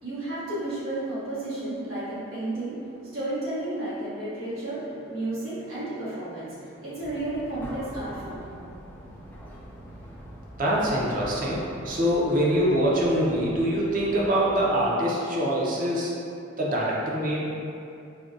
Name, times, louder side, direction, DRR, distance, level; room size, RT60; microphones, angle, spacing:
voice 1, 0.0-8.5, right 1 dB, 90° right, -12 dB, 1.3 m, -32 dB
sound 1, 7.0-14.7, equal, 10° left, 0.5 m, -43 dB
voice 2, 10.6-16.1 16.6-17.5, equal, 45° right, -5 dB, 0.6 m, -24 dB
4.8 x 2.2 x 2.6 m, 2.7 s
head